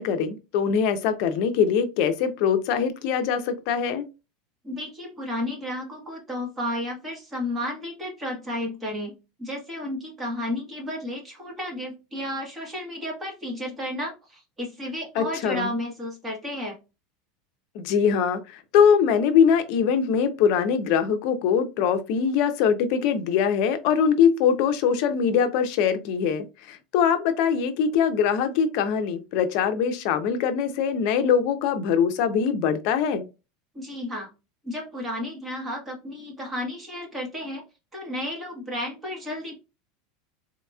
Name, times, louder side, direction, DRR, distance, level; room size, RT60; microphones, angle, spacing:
voice 1, 0.0-4.1 15.1-15.7 17.7-33.3, left 7 dB, 55° left, 0.6 m, -22 dB
voice 2, 4.6-9.1 9.4-16.7 33.7-34.3 34.6-37.6 37.9-39.6, left 1 dB, 15° right, 1.4 m, -32 dB
4.0 x 2.9 x 2.3 m
supercardioid pair, 150°, 0 cm